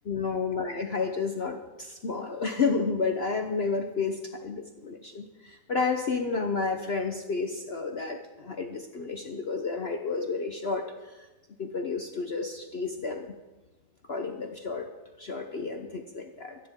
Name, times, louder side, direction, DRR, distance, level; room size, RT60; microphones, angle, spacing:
voice 1, 0.0-11.3 11.6-13.3 14.1-14.9 15.2-16.6, left 4 dB, 45° left, 4 dB, 0.9 m, -31 dB
24.5 x 10.0 x 3.7 m, 1.1 s
omnidirectional pair, 1.7 m